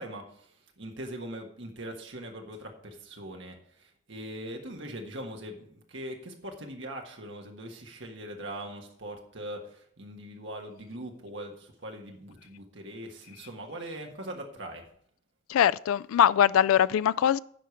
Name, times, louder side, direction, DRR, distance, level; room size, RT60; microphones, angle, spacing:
voice 1, 0.0-14.8, right 1 dB, 65° right, 1.5 m, -41 dB
voice 2, 15.5-17.4, left 9 dB, 90° left, 0.3 m, -22 dB
9.9 x 4.9 x 7.1 m
head